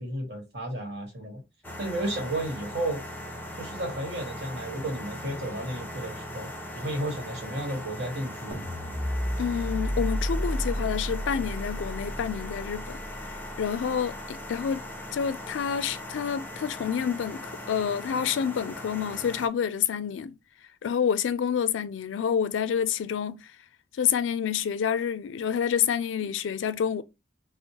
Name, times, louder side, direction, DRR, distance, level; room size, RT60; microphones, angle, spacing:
voice 1, 0.0-1.4 1.8-3.0 3.6-6.5 6.8-8.7, right 1 dB, 65° right, 1.3 m, -33 dB
sound 1, 1.6-19.5, left 1 dB, 10° left, 0.5 m, -40 dB
sound 2, 8.5-14.8, equal, 30° right, 1.0 m, -32 dB
voice 2, 9.4-13.0 13.6-14.8 15.1-20.4 20.8-23.5 24.0-27.0, left 8 dB, 90° left, 0.4 m, -28 dB
4.3 x 2.0 x 2.9 m
head